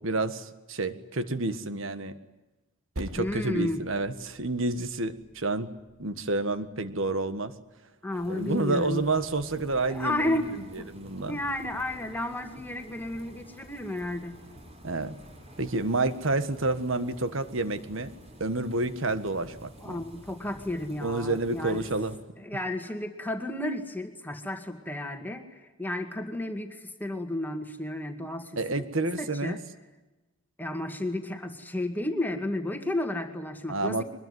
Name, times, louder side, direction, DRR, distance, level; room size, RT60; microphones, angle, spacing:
voice 1, 0.0-2.1 2.9-5.7 6.0-7.5 8.3-10.4 10.7-11.4 14.8-15.1 15.6-18.1 18.4-19.9 21.0-22.1 28.6-29.6 33.7-34.0, right 2 dB, 60° right, 11 dB, 1.6 m, -29 dB
Percussion, 3.0-7.8, right 1 dB, 80° right, 2.8 m, -46 dB
voice 2, 3.2-3.8 8.0-9.1 9.9-10.9 11.3-14.4 19.8-21.9 22.4-28.9 29.2-29.6 30.6-34.0, left 1 dB, 10° left, 5 dB, 2.0 m, -32 dB
sound 1, 8.1-22.2, equal, 30° right, 4.7 m, -50 dB
23.5 x 21.5 x 9.6 m, 1.1 s
head